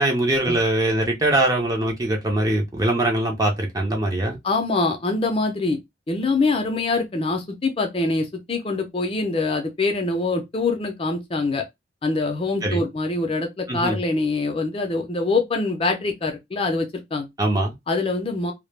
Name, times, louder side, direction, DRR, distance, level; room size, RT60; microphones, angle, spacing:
voice 1, 0.0-4.4 12.6-12.8 13.7-14.0 17.4-17.7, right 1 dB, 20° right, 0.5 m, -22 dB
voice 2, 4.4-5.8 6.1-11.6 12.0-17.3 17.9-18.5, left 3 dB, 30° left, 0.4 m, -24 dB
2.1 x 2.0 x 3.1 m
head